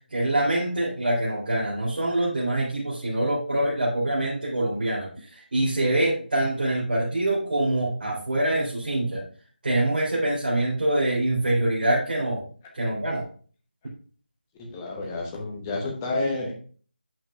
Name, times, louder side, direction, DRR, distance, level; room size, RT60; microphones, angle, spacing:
voice 1, 0.1-9.2 9.6-12.4 12.7-13.3, right 1 dB, 55° right, -7 dB, 3.6 m, -25 dB
voice 2, 14.6-16.5, left 2 dB, 15° left, 0 dB, 1.0 m, -30 dB
8.2 x 7.2 x 2.4 m, 0.43 s
figure-of-eight pair, 165°, 6 cm